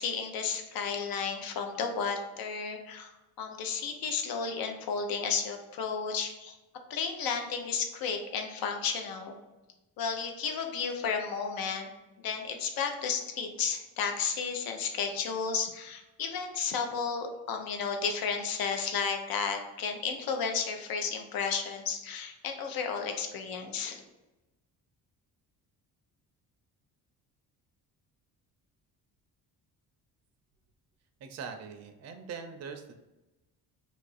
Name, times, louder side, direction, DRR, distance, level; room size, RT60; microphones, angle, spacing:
voice 1, 0.0-3.1 3.4-6.6 6.9-9.3 10.0-11.9 12.2-24.0, left 6 dB, 70° left, 5 dB, 0.7 m, -33 dB
voice 2, 31.2-33.0, right 6 dB, 45° right, 6 dB, 0.5 m, -42 dB
2.9 x 2.5 x 4.0 m, 1.0 s
cardioid pair, 115°, 37 cm